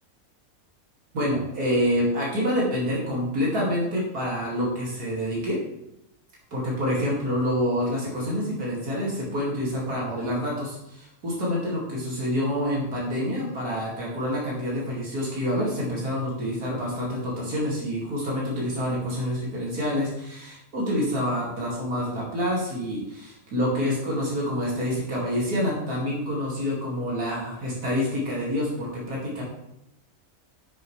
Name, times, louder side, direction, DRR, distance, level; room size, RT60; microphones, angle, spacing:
voice 1, 1.1-5.6 6.5-29.4, equal, 85° right, -5 dB, 2.9 m, -27 dB
9.7 x 6.8 x 3.3 m, 0.81 s
omnidirectional pair, 1.6 m